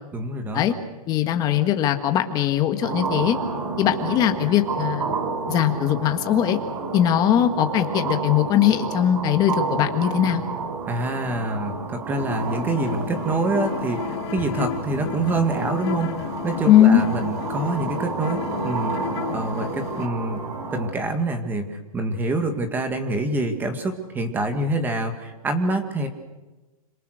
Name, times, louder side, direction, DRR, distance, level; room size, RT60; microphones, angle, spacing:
voice 1, 0.1-0.7 10.9-20.4 20.7-26.1, right 2 dB, 10° right, 6 dB, 1.9 m, -26 dB
voice 2, 1.1-3.4 3.8-5.0 5.5-6.6 6.9-10.4 16.7-17.0, left 11 dB, 20° left, 7 dB, 1.7 m, -20 dB
sound 1, 2.8-20.9, right 4 dB, 80° right, 7.2 m, -30 dB
sound 2, 12.2-20.1, left 11 dB, 45° left, 1.6 m, -33 dB
26.5 x 26.0 x 6.6 m, 1.2 s
hypercardioid pair, 160°, 19 cm